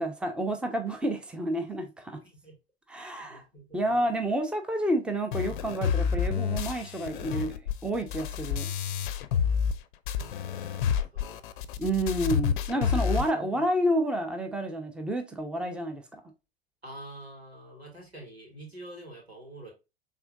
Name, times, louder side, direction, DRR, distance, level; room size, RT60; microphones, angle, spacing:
voice 1, 0.0-2.2 2.9-3.4 3.7-7.5 7.8-8.7 11.8-16.2, right 1 dB, 5° right, 0.8 m, -29 dB
voice 2, 2.2-2.5 3.0-4.1 10.1-11.4 13.0-13.6 16.8-19.7, right 1 dB, 90° right, 2.4 m, -47 dB
sound 1, 5.3-9.8 10.1-13.3, left 7 dB, 55° left, 0.6 m, -29 dB
5.9 x 3.7 x 2.4 m
figure-of-eight pair, 90°, 31 cm